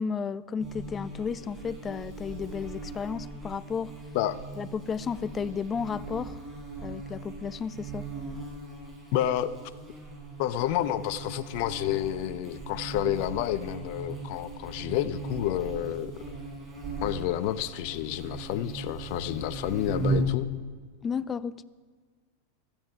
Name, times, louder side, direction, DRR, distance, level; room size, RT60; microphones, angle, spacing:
voice 1, 0.0-3.9 4.6-6.4 6.8-8.1 21.0-21.6, left 6 dB, 25° left, 0.5 m, -33 dB
Buzz, 0.6-20.4, right 2 dB, 15° right, 6.3 m, -37 dB
voice 2, 9.1-9.5 10.4-16.2 17.0-20.5, left 12 dB, 55° left, 0.8 m, -30 dB
17.0 x 13.5 x 5.7 m
hypercardioid pair, 90°, 0 cm